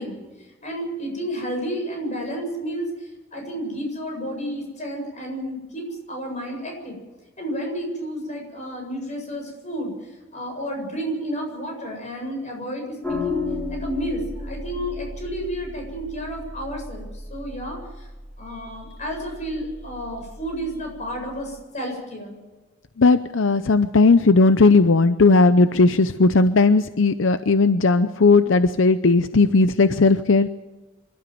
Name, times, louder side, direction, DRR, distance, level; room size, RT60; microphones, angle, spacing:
voice 1, 0.0-7.0 7.4-18.1 18.4-22.4, equal, 40° left, 2 dB, 8.0 m, -31 dB
sound 1, 13.0-21.6, left 3 dB, 5° left, 5.2 m, -35 dB
voice 2, 23.0-30.5, left 3 dB, 75° left, 11 dB, 0.7 m, -16 dB
26.5 x 13.0 x 9.4 m, 1.2 s
head